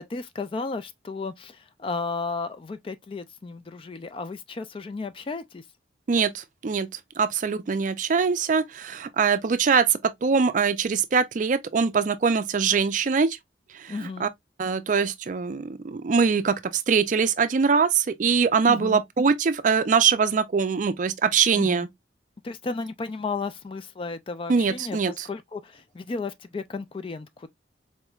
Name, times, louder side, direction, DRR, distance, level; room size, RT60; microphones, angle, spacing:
voice 1, 0.0-5.6 13.9-14.3 18.7-19.0 21.5-21.9 22.4-27.5, left 4 dB, 30° left, 0.3 m, -34 dB
voice 2, 6.1-6.9 7.2-13.4 13.8-13.9 14.2-14.3 14.6-16.6 16.9-21.9 24.5-25.3, right 5 dB, 45° right, 0.4 m, -23 dB
4.2 x 3.1 x 2.3 m
head